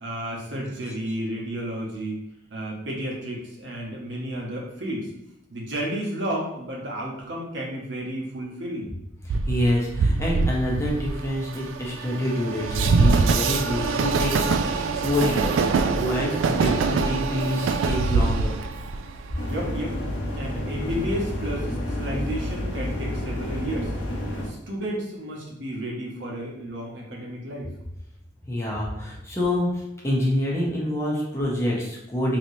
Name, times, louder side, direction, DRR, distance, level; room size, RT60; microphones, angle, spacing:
voice 1, 0.0-2.2 2.5-5.1 5.5-8.9 19.5-20.0 20.3-23.9 24.4-27.7, equal, 70° right, -2 dB, 0.9 m, -32 dB
voice 2, 9.2-18.6 28.4-32.4, left 1 dB, 15° left, -4 dB, 0.6 m, -27 dB
Train, 9.3-19.7, right 4 dB, 85° right, 0.3 m, -24 dB
sound 1, 19.4-24.5, left 1 dB, 80° left, 0.8 m, -30 dB
3.2 x 2.9 x 2.7 m, 0.85 s
head